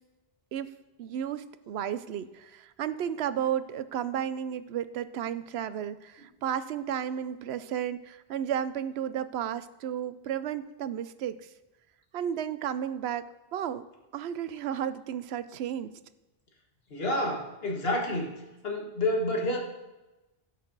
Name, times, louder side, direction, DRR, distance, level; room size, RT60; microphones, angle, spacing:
voice 1, 1.0-11.5 12.1-13.8 14.1-15.9, right 9 dB, 90° right, 14 dB, 0.9 m, -33 dB
voice 2, 16.9-18.4 18.6-19.6, left 1 dB, 70° left, 0 dB, 1.9 m, -29 dB
16.5 x 6.0 x 4.0 m, 1.1 s
omnidirectional pair, 1.0 m